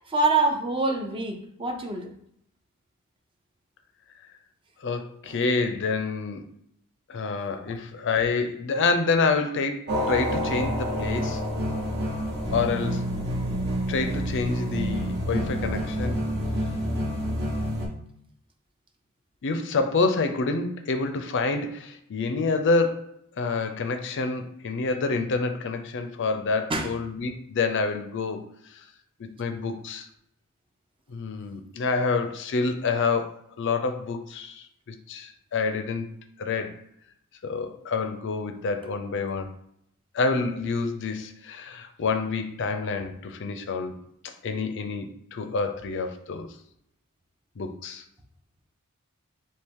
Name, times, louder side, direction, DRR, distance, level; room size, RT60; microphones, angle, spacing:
voice 1, 0.1-2.1 5.3-5.4 26.7-26.9, right 3 dB, 25° right, 0.5 m, -25 dB
voice 2, 4.8-6.5 7.1-11.4 12.5-13.0 13.9-16.2 19.4-28.5 28.7-28.8 29.2-30.1 31.1-36.1 36.4-36.7 37.4-39.5 40.1-44.0 44.2-46.5 47.6-48.0, left 4 dB, 55° left, 0.5 m, -27 dB
sound 1, 9.9-17.9, equal, 50° right, 1.1 m, -28 dB
4.5 x 2.8 x 3.6 m
head